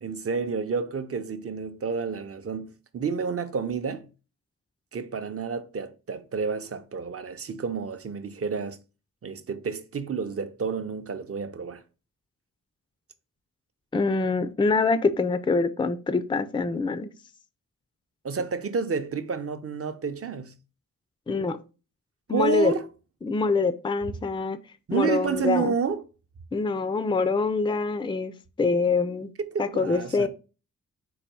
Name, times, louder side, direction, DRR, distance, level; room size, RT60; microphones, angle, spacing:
voice 1, 0.0-4.1 4.9-8.8 9.2-11.8 18.2-20.6 22.3-22.8 24.9-26.0 29.5-30.3, right 6 dB, 40° right, 0.6 m, -30 dB
voice 2, 13.9-17.1 21.3-21.6 22.3-22.7 23.2-24.6 24.9-25.7 26.5-28.3 28.6-29.3 29.6-30.3, left 4 dB, 15° left, 0.4 m, -25 dB
4.0 x 2.6 x 4.7 m
cardioid pair, 70°, 34 cm